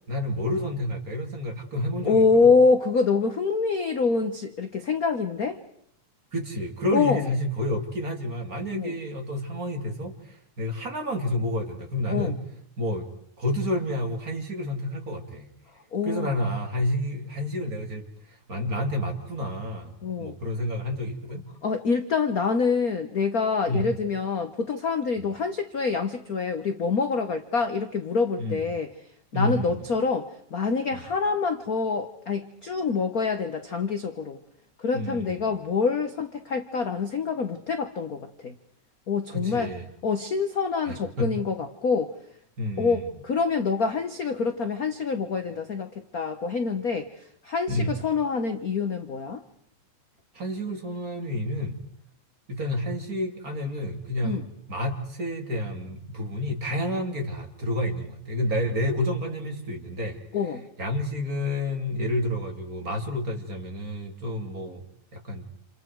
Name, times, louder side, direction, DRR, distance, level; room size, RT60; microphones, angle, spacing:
voice 1, 0.1-2.5 6.3-12.4 12.8-13.1 13.4-15.5 16.0-18.0 18.5-19.9 20.2-21.4 23.7-23.9 25.2-25.3 28.4-28.6 29.3-29.9 30.9-31.0 34.9-35.5 39.3-39.9 40.9-41.3 42.6-43.1 47.7-48.0 50.3-51.8 52.5-60.2 60.8-64.8 65.1-65.5, left 1 dB, 30° right, 3 dB, 2.9 m, -30 dB
voice 2, 2.0-5.6 6.9-7.3 8.7-8.9 12.1-12.4 15.9-16.3 20.0-20.4 21.6-28.9 29.3-34.4 34.8-38.5 39.1-39.7 40.0-42.1 42.8-49.4 54.2-54.4 60.3-60.6, left 4 dB, 65° left, 8 dB, 0.9 m, -26 dB
29.5 x 28.5 x 4.7 m, 0.69 s
omnidirectional pair, 3.3 m